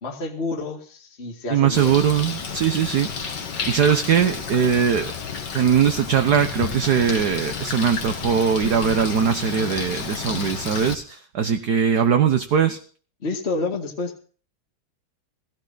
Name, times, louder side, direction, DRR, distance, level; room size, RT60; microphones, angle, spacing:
voice 1, 0.0-1.9 13.2-14.1, left 3 dB, 30° left, 1 dB, 2.4 m, -29 dB
voice 2, 1.5-3.1 3.7-5.1 5.5-12.8, right 7 dB, 55° right, 8 dB, 1.5 m, -20 dB
Bird, 1.7-10.9, left 6 dB, 55° left, 2.4 m, -31 dB
17.0 x 16.5 x 4.1 m, 0.41 s
omnidirectional pair, 2.3 m